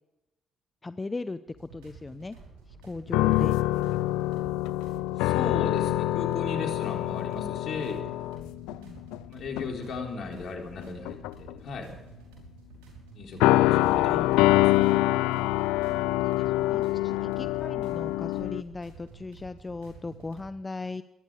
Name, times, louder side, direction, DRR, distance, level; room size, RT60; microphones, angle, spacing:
voice 1, 0.8-2.4 2.8-3.5 8.8-9.0 16.4-21.0, left 3 dB, 25° left, 12 dB, 0.7 m, -37 dB
sound 1, 1.5-20.5, right 4 dB, 85° right, 5.5 m, -50 dB
sound 2, 3.1-9.2 9.6-9.8 10.8-11.5 13.4-18.6, left 17 dB, 80° left, 0.4 m, -25 dB
voice 2, 5.2-8.0 9.3-11.9 13.1-14.8, left 4 dB, 65° left, 1 dB, 4.0 m, -36 dB
24.5 x 10.5 x 5.0 m, 0.99 s
hypercardioid pair, 50°, 0 cm